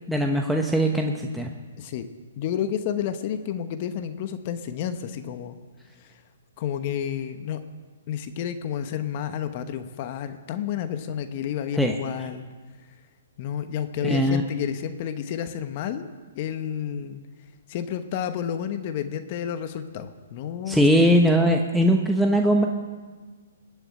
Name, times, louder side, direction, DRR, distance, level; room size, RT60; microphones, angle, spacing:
voice 1, 0.0-1.5 11.8-12.0 14.0-14.4 20.7-22.7, equal, ahead, 1 dB, 0.9 m, -20 dB
voice 2, 1.8-2.1 2.4-5.6 6.6-7.6 8.1-12.4 13.4-16.1 16.3-17.2 17.7-21.1, left 9 dB, 40° left, 9 dB, 1.0 m, -30 dB
20.5 x 7.1 x 8.8 m, 1.4 s
hypercardioid pair, 140°, 0 cm